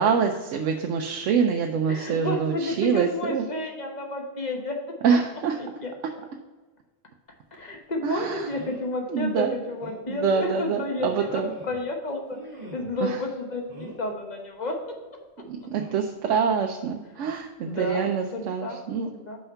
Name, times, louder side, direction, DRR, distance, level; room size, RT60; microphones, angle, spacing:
voice 1, 0.0-3.4 5.0-5.6 8.0-8.5 9.1-9.6 10.1-11.5 13.0-13.2 15.5-19.1, right 6 dB, 85° right, 3 dB, 0.9 m, -25 dB
voice 2, 1.9-4.8 5.6-5.9 7.5-11.3 11.6-12.2 12.7-14.8 17.6-18.0 18.3-18.8 19.1-19.4, left 2 dB, 40° left, 2 dB, 1.2 m, -31 dB
sound 1, 7.5-7.7 8.5-8.9 9.4-9.5 9.8-10.1 11.0-11.9 12.3-13.1 13.7-14.1 15.7-16.1 17.3-17.5 17.8-17.9, right 2 dB, 40° right, 1.6 m, -43 dB
5.6 x 5.3 x 5.6 m, 1.3 s
omnidirectional pair, 1.2 m